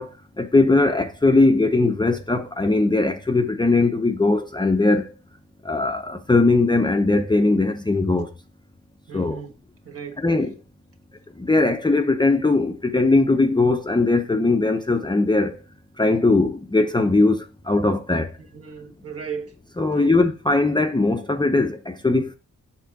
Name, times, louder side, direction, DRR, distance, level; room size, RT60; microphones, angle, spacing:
voice 1, 0.0-5.1 5.6-8.3 9.1-9.4 10.2-10.5 11.4-15.6 16.0-18.3 19.8-22.3, left 2 dB, 15° left, 0.6 m, -20 dB
voice 2, 9.1-9.5 9.8-10.2 18.5-19.5 19.9-20.2, right 6 dB, 45° right, 1.3 m, -35 dB
7.1 x 3.7 x 5.9 m
cardioid pair, 105°, 33 cm